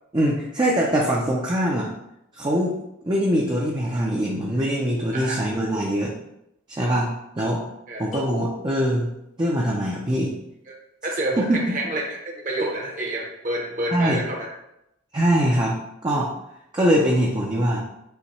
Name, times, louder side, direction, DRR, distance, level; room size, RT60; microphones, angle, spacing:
voice 1, 0.1-1.9 2.3-2.8 3.0-6.1 6.7-7.1 7.4-7.6 8.0-9.1 9.4-10.3 11.4-11.6 13.9-14.2 15.1-15.8 16.0-16.3 16.7-17.8, equal, 20° right, -3 dB, 0.5 m, -22 dB
sound 1, 8.1-9.3, left 4 dB, 35° left, 0.6 m, -40 dB
voice 2, 11.0-14.5, right 1 dB, 40° right, -2 dB, 0.9 m, -28 dB
5.6 x 2.2 x 4.1 m, 0.81 s
head